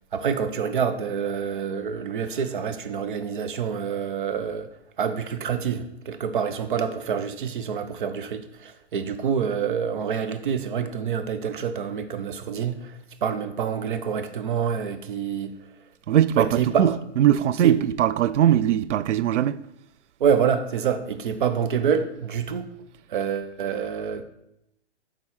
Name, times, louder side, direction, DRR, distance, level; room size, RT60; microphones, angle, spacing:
voice 1, 0.1-4.7 5.0-15.5 16.4-16.8 17.6-17.7 20.2-22.7 23.1-24.2, right 7 dB, 45° right, 0.7 m, -27 dB
voice 2, 16.1-19.6, right 11 dB, 80° right, 0.5 m, -20 dB
9.0 x 3.8 x 5.7 m
hypercardioid pair, 170°, 35 cm